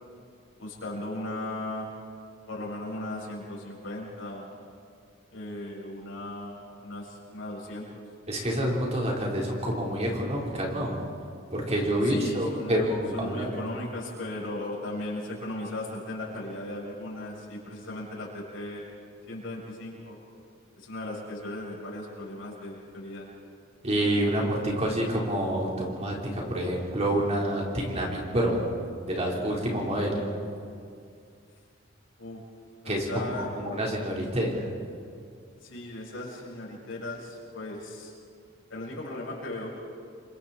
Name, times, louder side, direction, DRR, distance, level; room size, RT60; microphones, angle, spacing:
voice 1, 0.6-1.9 2.5-4.5 5.3-8.0 12.0-12.7 13.1-18.9 19.3-20.2 20.8-23.3 32.2-32.4 32.8-33.5 35.6-38.1 38.7-39.8, left 1 dB, 75° left, -4 dB, 7.4 m, -37 dB
voice 2, 8.3-11.0 11.5-13.5 23.8-28.6 29.1-30.3 32.8-34.7, right 1 dB, 35° right, -2 dB, 4.3 m, -28 dB
29.5 x 25.5 x 4.4 m, 2.3 s
head